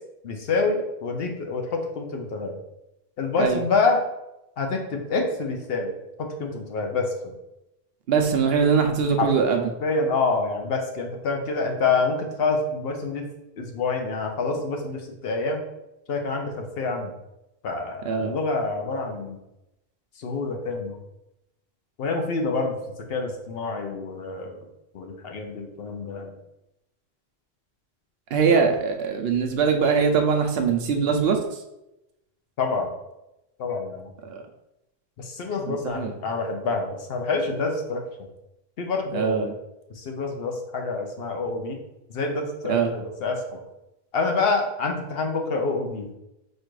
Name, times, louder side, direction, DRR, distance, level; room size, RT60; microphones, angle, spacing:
voice 1, 0.2-2.6 3.2-4.0 4.6-5.9 6.2-7.3 9.2-9.3 9.8-13.3 13.6-15.6 16.1-17.1 17.6-19.4 20.2-21.0 22.0-22.8 23.1-24.7 24.9-26.3 32.6-32.9 33.6-34.1 35.2-38.0 38.8-39.5 39.9-41.8 42.1-43.6 44.1-46.2, left 3 dB, 70° left, 3 dB, 0.9 m, -27 dB
voice 2, 8.1-9.6 18.0-18.3 28.3-31.6 34.2-34.4 35.7-36.1 39.1-39.5 42.7-42.9, right 6 dB, 70° right, 4 dB, 0.8 m, -22 dB
4.4 x 2.4 x 4.6 m, 0.91 s
omnidirectional pair, 1.1 m